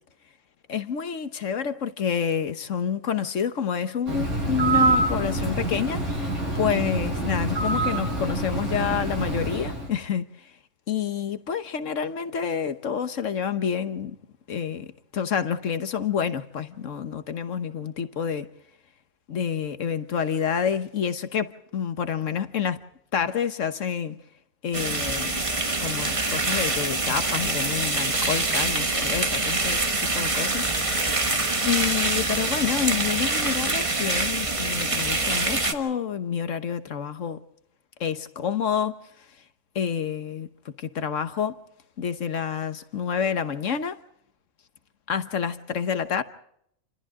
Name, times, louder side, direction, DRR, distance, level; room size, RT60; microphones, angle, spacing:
voice 1, 0.7-10.5 10.9-14.2 14.5-18.5 19.3-22.8 23.1-24.2 24.6-25.4 25.8-30.6 31.6-37.4 38.0-39.0 39.7-40.5 40.8-41.6 42.0-44.0 45.1-46.2, left 7 dB, 65° left, 1.4 m, -28 dB
Bird, 4.1-9.9, right 2 dB, 55° right, 8.0 m, -26 dB
sound 1, 24.7-35.7, right 2 dB, 25° right, 1.4 m, -25 dB
29.0 x 26.5 x 3.7 m
omnidirectional pair, 1.5 m